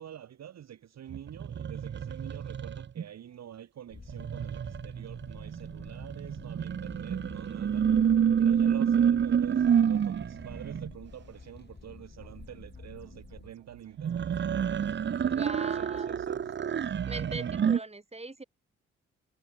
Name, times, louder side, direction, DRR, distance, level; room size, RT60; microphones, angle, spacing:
voice 1, 0.0-7.9 8.4-14.4 15.0-16.8, right 10 dB, 55° right, 1.3 m, -47 dB
sound 1, 1.1-3.0 4.1-10.9 14.0-17.8, right 8 dB, 35° right, 0.7 m, -28 dB
sound 2, 3.9-13.5, left 4 dB, 30° left, 6.3 m, -50 dB
sound 3, 12.2-16.6, right 22 dB, 85° right, 4.8 m, -57 dB
voice 2, 15.2-16.2 17.1-18.4, right 2 dB, 20° right, 3.5 m, -40 dB
hypercardioid pair, 40°, 32 cm